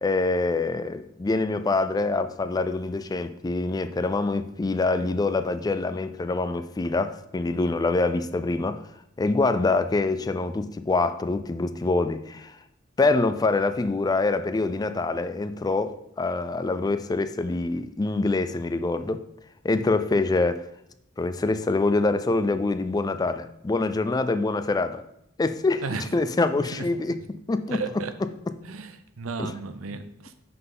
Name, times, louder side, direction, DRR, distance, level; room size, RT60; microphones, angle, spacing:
voice 1, 0.0-8.8 9.2-12.6 13.0-19.2 19.6-20.6 21.2-25.0 25.4-25.8 26.1-27.2 27.5-27.8 29.4-29.5, left 3 dB, 20° left, 0.3 m, -25 dB
voice 2, 26.5-26.9 27.7-28.1 28.6-30.4, right 4 dB, 90° right, 0.6 m, -34 dB
5.7 x 5.5 x 3.8 m
head